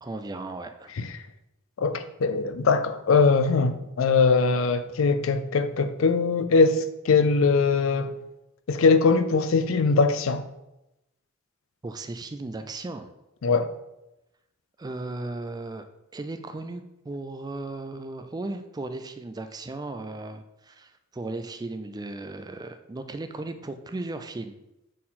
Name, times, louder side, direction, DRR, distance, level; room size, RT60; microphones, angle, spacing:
voice 1, 0.0-0.9 11.8-13.1 14.8-15.9 16.1-24.6, right 2 dB, 20° right, 0.3 m, -36 dB
voice 2, 1.8-8.2 8.7-10.4 13.4-13.7, left 4 dB, 70° left, 0.4 m, -21 dB
6.5 x 3.8 x 4.2 m
head